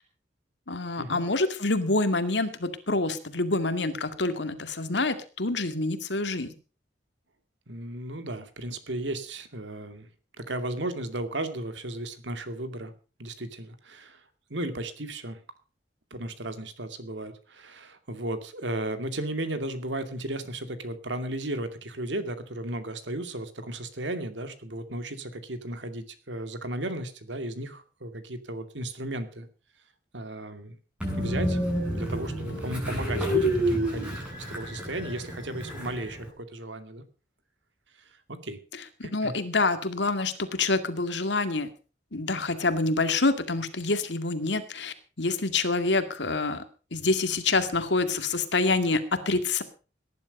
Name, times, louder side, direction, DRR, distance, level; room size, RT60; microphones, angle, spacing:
voice 1, 0.7-6.5 39.0-41.7 42.1-46.6 46.9-49.6, left 3 dB, 75° left, 9 dB, 2.1 m, -27 dB
voice 2, 7.7-10.1 10.4-12.9 13.2-14.2 14.5-15.4 16.1-29.5 30.1-30.8 31.2-31.6 31.9-37.0 38.0-38.6 39.0-39.3, right 1 dB, 80° right, 9 dB, 2.4 m, -35 dB
Train, 31.0-36.3, equal, 5° right, 6.9 m, -29 dB
18.0 x 11.0 x 5.3 m, 0.35 s
head